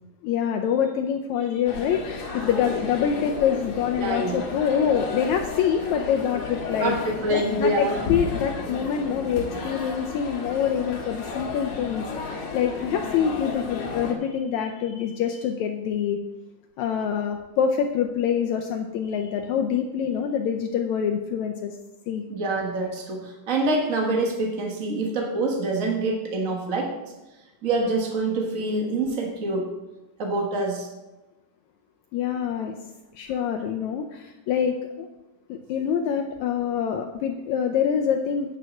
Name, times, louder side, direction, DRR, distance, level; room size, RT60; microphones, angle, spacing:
voice 1, 0.2-7.0 7.3-16.2 16.8-21.8 22.1-22.2 32.1-32.7 33.2-35.1 35.5-38.6, left 8 dB, 80° left, 4 dB, 1.7 m, -25 dB
sound 1, 1.7-14.1, left 4 dB, 55° left, 2.7 m, -33 dB
voice 2, 4.0-4.4 6.8-7.9 22.3-26.9 27.6-29.7 30.2-30.9, right 2 dB, 85° right, 1 dB, 0.7 m, -26 dB
9.0 x 6.4 x 6.4 m, 1.0 s
omnidirectional pair, 3.8 m